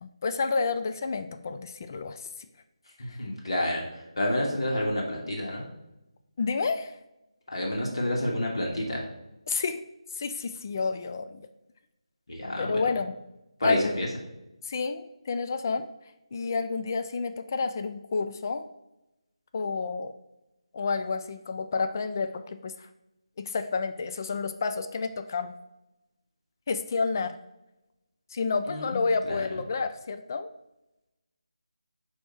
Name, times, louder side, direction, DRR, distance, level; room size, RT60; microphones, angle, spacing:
voice 1, 0.0-2.3 3.1-3.2 6.4-7.0 9.5-9.8 10.1-11.5 12.6-13.1 13.6-14.0 14.6-15.9 16.3-18.6 19.5-20.1 20.7-22.9 23.4-25.5 26.7-27.3 28.3-30.5, left 4 dB, 35° left, 8 dB, 0.3 m, -30 dB
voice 2, 3.0-5.7 7.5-9.0 12.3-12.8 13.6-14.1 28.7-29.0 29.3-29.4, left 1 dB, 55° left, -2 dB, 1.6 m, -29 dB
8.4 x 2.9 x 4.4 m, 0.94 s
figure-of-eight pair, 155°, 3 cm